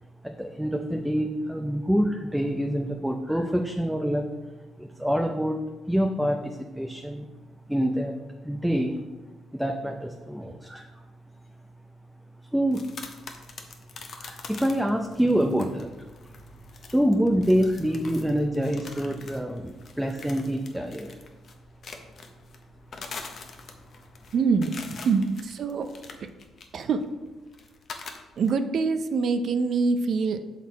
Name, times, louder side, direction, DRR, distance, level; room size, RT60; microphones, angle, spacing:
voice 1, 0.2-4.2 4.8-5.6 5.9-7.3 7.7-8.2 8.4-9.0 9.5-10.9 12.5-12.8 14.2-15.9 16.9-21.1, equal, 5° right, 3 dB, 0.5 m, -26 dB
sound 1, 12.7-28.5, left 4 dB, 55° left, 0.8 m, -45 dB
voice 2, 24.3-24.7 25.0-25.9 26.7-27.1 28.4-30.5, right 4 dB, 60° right, 9 dB, 0.5 m, -24 dB
6.1 x 4.1 x 4.1 m, 1.2 s
cardioid pair, 90°, 0 cm